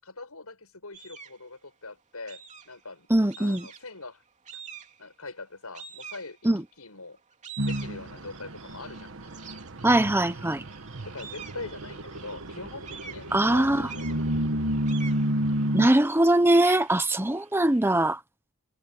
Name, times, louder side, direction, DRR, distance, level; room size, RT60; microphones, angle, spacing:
voice 1, 0.0-3.1 3.4-4.2 4.5-4.6 5.0-7.2 7.7-9.2 11.1-14.3, left 3 dB, 85° left, 7.3 m, -43 dB
sound 1, 0.9-1.5 2.3-2.9 3.3-4.0 4.5-5.1 5.7-6.7 7.2-17.9, right 6 dB, 35° right, 3.1 m, -47 dB
voice 2, 3.1-3.6 6.4-6.6 9.8-10.6 13.3-13.9 15.7-18.2, right 1 dB, 10° right, 0.9 m, -22 dB
sound 2, 7.6-15.9, right 1 dB, 65° right, 1.3 m, -31 dB
head